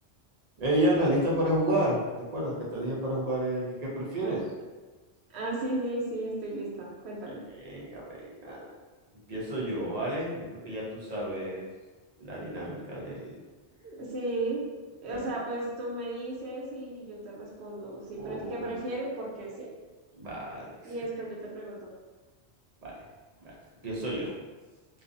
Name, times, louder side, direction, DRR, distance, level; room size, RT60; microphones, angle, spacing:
voice 1, 0.6-4.4 7.6-8.8 9.3-11.7 12.2-13.4 15.1-15.2 18.2-18.9 20.1-20.8 22.8-22.9 23.4-23.6 23.8-24.3, right 1 dB, 45° right, -4 dB, 0.6 m, -30 dB
voice 2, 5.3-7.4 13.8-14.6 15.0-19.7 20.8-21.9, right 1 dB, 75° right, -3 dB, 0.9 m, -35 dB
2.5 x 2.3 x 2.5 m, 1.3 s
omnidirectional pair, 1.1 m